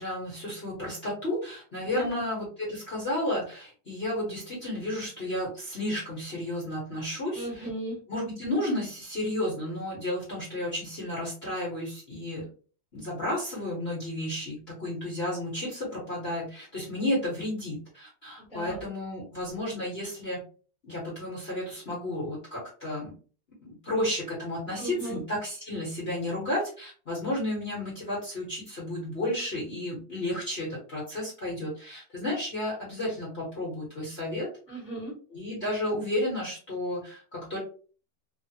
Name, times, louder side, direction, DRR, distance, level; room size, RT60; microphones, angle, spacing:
voice 1, 0.0-7.5 8.1-12.4 12.9-20.4 20.8-23.1 23.6-34.5 35.3-37.6, left 1 dB, 40° left, -6 dB, 1.2 m, -32 dB
voice 2, 7.3-8.0 18.4-18.9 24.8-25.2 34.7-35.1, right 1 dB, 5° right, -5 dB, 1.0 m, -36 dB
3.1 x 2.4 x 2.8 m, 0.39 s
omnidirectional pair, 2.1 m